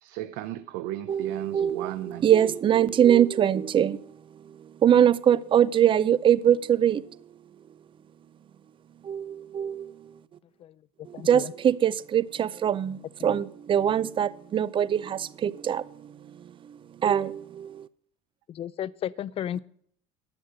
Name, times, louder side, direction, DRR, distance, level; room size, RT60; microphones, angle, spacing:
voice 1, 0.0-2.5, right 14 dB, 80° right, 0.6 m, -35 dB
voice 2, 1.1-1.9 2.2-4.0 4.8-7.0 9.1-9.2 9.5-9.8 11.3-13.0 13.2-15.8 17.0-17.4, right 9 dB, 30° right, 0.5 m, -22 dB
voice 3, 11.1-11.5 13.2-13.4 18.5-19.6, left 10 dB, 35° left, 0.4 m, -34 dB
11.5 x 8.1 x 7.8 m
cardioid pair, 125°, 17 cm